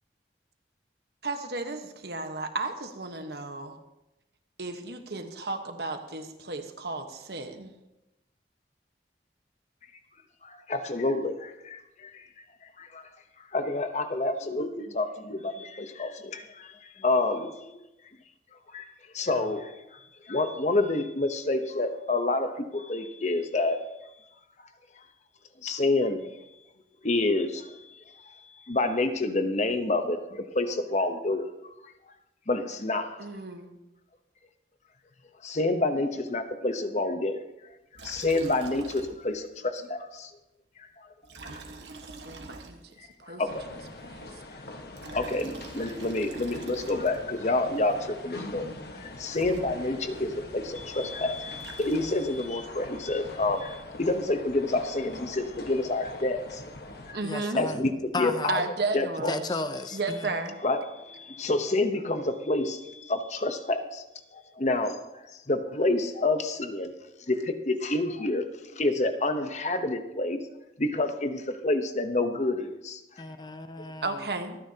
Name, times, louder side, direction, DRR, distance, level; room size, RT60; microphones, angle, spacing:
voice 1, 1.2-3.8 4.6-7.7 33.2-33.8 41.4-41.8 42.2-43.4 44.1-44.3 57.1-57.6 58.5-59.4 59.9-60.6 74.0-74.6, right 3 dB, 65° right, 6 dB, 1.2 m, -34 dB
voice 2, 10.4-12.3 12.8-13.0 13.5-17.7 18.7-18.9 19.1-20.0 20.2-23.8 25.6-26.3 27.0-27.7 28.7-31.5 31.8-31.9 32.5-33.2 35.4-37.4 38.0-40.3 41.0-41.1 43.0-43.7 44.0-44.1 44.5-44.6 45.1-56.6 57.1-57.2 57.6-57.9 58.2-58.6 58.9-59.3 60.6-64.0 64.3-66.9 67.3-70.4 70.8-73.2, left 2 dB, 40° left, 8 dB, 0.9 m, -28 dB
Liquid, 37.9-39.5 39.8-39.9 41.2-43.1 44.8-47.4 49.0-49.1 49.3-50.2 51.3-52.4, right 3 dB, 85° right, 1.5 m, -45 dB
sound 1, 43.5-57.1, left 2 dB, 60° left, 1.4 m, -43 dB
voice 3, 57.2-57.8 58.1-58.6 59.3-60.3 73.2-74.3, left 3 dB, 25° left, 10 dB, 0.5 m, -34 dB
25.0 x 9.6 x 2.9 m, 0.94 s
head